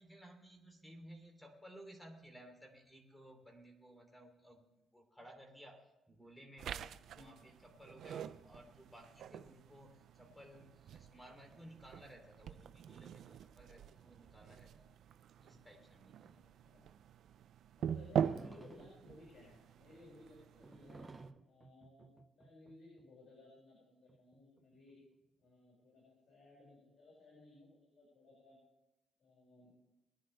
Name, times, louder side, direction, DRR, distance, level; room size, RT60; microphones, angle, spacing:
voice 1, 0.0-5.8 6.1-14.9 15.4-16.4, equal, 10° left, 2 dB, 3.2 m, -57 dB
sound 1, 6.6-21.3, right 9 dB, 70° right, 0.5 m, -44 dB
voice 2, 7.1-7.4 15.4-15.6 16.3-16.8 17.8-21.1 21.4-25.0 25.4-28.6 29.2-29.7, left 2 dB, 60° left, -5 dB, 6.1 m, -60 dB
sound 2, 18.2-19.2 20.6-23.1 24.1-25.1, right 3 dB, 20° right, 0.8 m, -55 dB
21.5 x 10.5 x 3.4 m, 0.95 s
cardioid pair, 90°, 0 cm